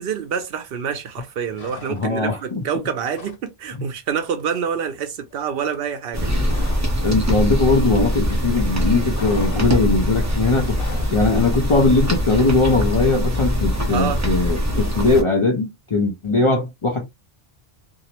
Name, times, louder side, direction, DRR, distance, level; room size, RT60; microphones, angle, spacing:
voice 1, 0.0-6.3 13.9-14.2, right 7 dB, 70° right, 0.8 m, -27 dB
sound 1, 1.5-2.3 2.6-3.5 3.7-4.0 4.2-7.0 7.3-8.4 8.6-11.2, left 3 dB, 70° left, 0.9 m, -40 dB
voice 2, 1.9-2.6 7.0-10.8 11.1-17.1, left 3 dB, 40° left, 0.5 m, -20 dB
sound 2, 6.1-15.2, equal, 20° right, 0.6 m, -22 dB
2.7 x 2.0 x 2.8 m
omnidirectional pair, 1.0 m